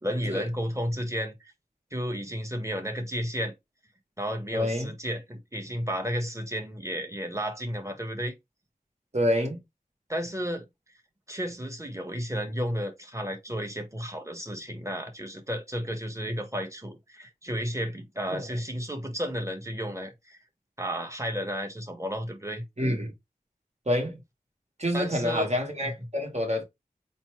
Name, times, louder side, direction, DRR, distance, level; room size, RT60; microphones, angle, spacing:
voice 1, 0.0-1.5 1.9-3.5 4.2-8.3 10.1-10.7 11.3-20.4 20.8-22.6 24.9-25.5 25.8-25.9, equal, 20° right, 1.4 m, -32 dB
voice 2, 4.5-4.9 9.1-9.6 18.3-18.4 22.8-23.1 23.9-24.2 24.8-26.6, equal, 50° right, 1.5 m, -27 dB
4.1 x 2.2 x 4.6 m
wide cardioid pair, 40°, 15 cm